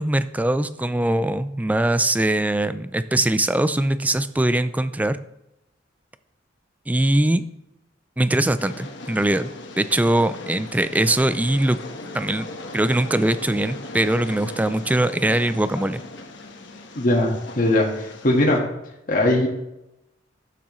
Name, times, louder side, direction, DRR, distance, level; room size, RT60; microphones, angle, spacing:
voice 1, 0.0-5.2 6.9-7.4 8.2-9.5 9.8-11.8 12.1-12.5 12.7-16.0, right 1 dB, 10° right, 13 dB, 0.3 m, -21 dB
Train, 8.6-18.6, left 2 dB, 65° left, 1.2 m, -38 dB
voice 2, 16.9-18.6 19.1-19.5, left 1 dB, 45° left, -1 dB, 1.5 m, -20 dB
12.0 x 8.6 x 3.1 m, 0.88 s
head